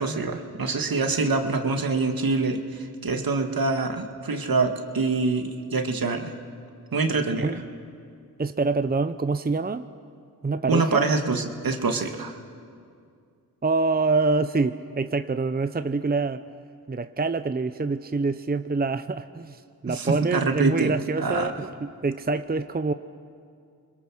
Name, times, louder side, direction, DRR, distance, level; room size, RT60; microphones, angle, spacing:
voice 1, 0.0-6.3 6.9-7.6 10.7-12.4 19.9-21.5, right 3 dB, 65° right, 5 dB, 2.1 m, -25 dB
voice 2, 8.4-9.8 10.4-11.1 13.6-16.4 16.9-22.9, right 3 dB, 25° right, 10 dB, 0.7 m, -26 dB
29.0 x 21.5 x 6.4 m, 2.3 s
cardioid pair, 45°, 38 cm